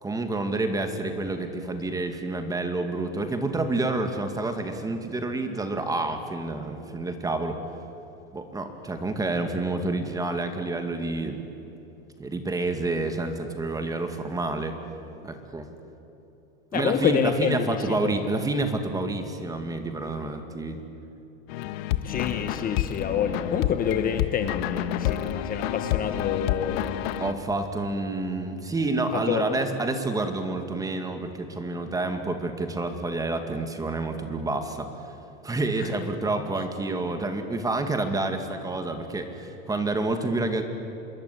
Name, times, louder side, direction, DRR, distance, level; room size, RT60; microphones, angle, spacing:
voice 1, 0.0-7.6 8.3-11.4 12.2-14.8 15.2-15.7 16.7-20.8 27.2-34.9 35.4-40.7, right 2 dB, 10° right, 7 dB, 2.3 m, -28 dB
voice 2, 16.7-18.2 22.0-26.9 29.1-29.4 35.8-35.9, left 8 dB, 25° left, 7 dB, 1.3 m, -28 dB
sound 1, 21.5-27.3, left 11 dB, 70° left, 1.5 m, -29 dB
26.5 x 22.0 x 10.0 m, 2.9 s
supercardioid pair, 150°, 32 cm